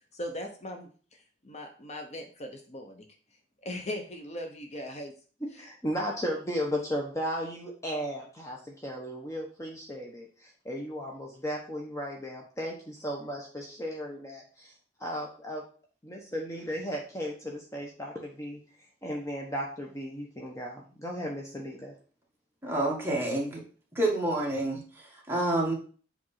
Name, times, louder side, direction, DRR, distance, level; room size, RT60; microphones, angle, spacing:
voice 1, 0.1-3.1 3.6-5.1 5.5-5.6, left 1 dB, 40° left, 4 dB, 0.9 m, -39 dB
voice 2, 5.4-14.7 15.0-15.6 16.0-18.6 19.0-21.9, equal, 15° left, -1 dB, 1.1 m, -35 dB
voice 3, 22.6-23.6 24.0-25.7, right 1 dB, 15° right, -2 dB, 1.9 m, -28 dB
7.8 x 3.5 x 5.7 m, 0.41 s
head